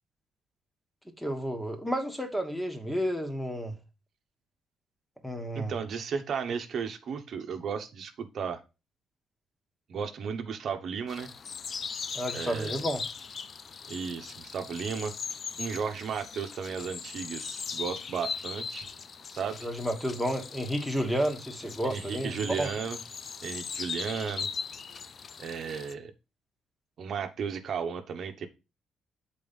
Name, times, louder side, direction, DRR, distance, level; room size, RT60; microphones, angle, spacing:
voice 1, 1.2-3.8 5.2-5.8 12.1-13.0 19.6-22.7, equal, 5° left, 1.5 m, -31 dB
voice 2, 5.5-8.6 9.9-11.3 12.3-12.8 13.9-15.1 15.6-18.9 19.4-19.7 21.8-23.0 23.4-24.5 25.4-26.1 27.0-28.5, right 6 dB, 60° right, 1.0 m, -34 dB
sound 1, 11.1-25.9, left 5 dB, 45° left, 0.5 m, -39 dB
6.9 x 4.2 x 5.3 m
cardioid pair, 90°, 0 cm